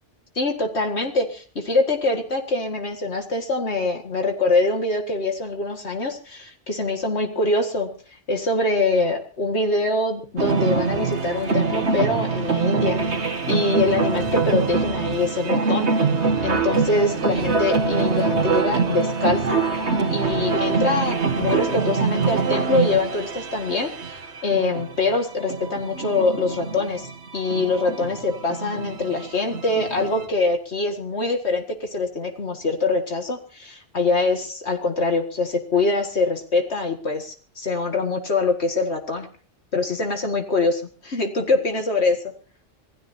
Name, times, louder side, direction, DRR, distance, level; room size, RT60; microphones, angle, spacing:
voice 1, 0.4-7.9 8.3-15.9 16.4-19.6 20.1-27.1 27.3-39.3 39.7-42.2, left 3 dB, 65° left, 4 dB, 2.2 m, -24 dB
sound 1, 10.4-30.3, right 4 dB, 65° right, 1.9 m, -24 dB
26.5 x 16.5 x 2.8 m, 0.38 s
omnidirectional pair, 1.2 m